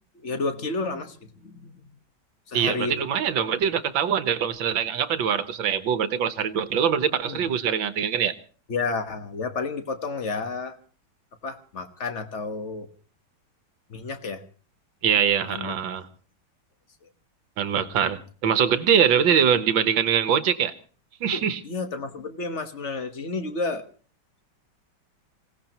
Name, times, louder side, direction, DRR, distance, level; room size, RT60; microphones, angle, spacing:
voice 1, 0.2-1.7 2.5-3.0 7.2-7.4 8.7-10.8 11.4-12.9 13.9-14.4 15.4-15.7 21.3-23.8, left 3 dB, 40° left, 1.5 m, -31 dB
voice 2, 2.5-8.3 15.0-16.0 17.6-20.7 21.2-21.6, right 8 dB, 70° right, 1.8 m, -23 dB
26.0 x 17.0 x 3.0 m
omnidirectional pair, 2.2 m